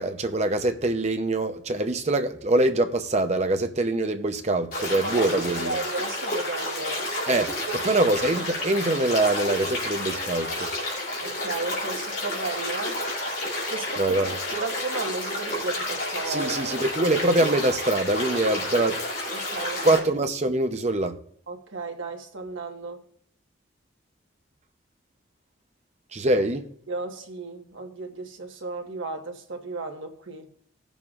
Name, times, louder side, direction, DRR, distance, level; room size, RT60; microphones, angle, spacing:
voice 1, 0.0-5.8 7.3-7.6 7.8-10.7 14.0-14.4 16.3-19.0 19.8-21.2 26.1-26.7, right 2 dB, 35° right, 0.7 m, -24 dB
sound 1, 4.7-20.0, left 1 dB, 45° left, 3.1 m, -30 dB
voice 2, 5.5-7.1 7.7-7.9 11.2-13.0 13.7-14.2 14.5-16.8 19.3-20.0 21.5-23.0 26.9-30.5, right 3 dB, 85° right, 1.5 m, -34 dB
18.0 x 7.1 x 2.4 m
head